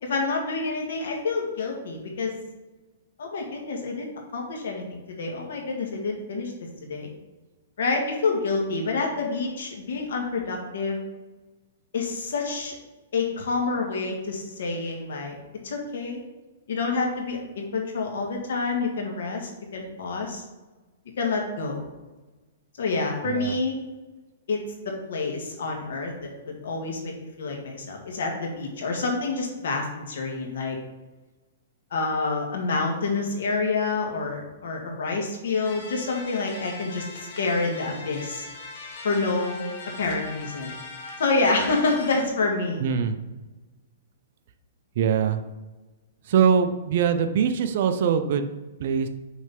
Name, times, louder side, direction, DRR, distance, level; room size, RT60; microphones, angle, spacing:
voice 1, 0.0-2.3 3.2-6.5 6.9-7.1 7.8-11.0 11.9-12.7 13.1-15.4 15.6-16.2 16.7-20.4 21.2-21.8 22.8-23.8 24.5-30.8 31.9-38.5 39.0-39.6 40.0-40.7 41.2-42.8, left 3 dB, 75° left, 1 dB, 1.7 m, -28 dB
voice 2, 23.2-23.6 42.8-43.2 45.0-45.4 46.2-49.1, right 7 dB, 50° right, 8 dB, 0.6 m, -23 dB
sound 1, 35.7-42.2, left 3 dB, 50° left, 1.5 m, -40 dB
6.3 x 3.3 x 5.2 m, 1.1 s
hypercardioid pair, 160°, 0 cm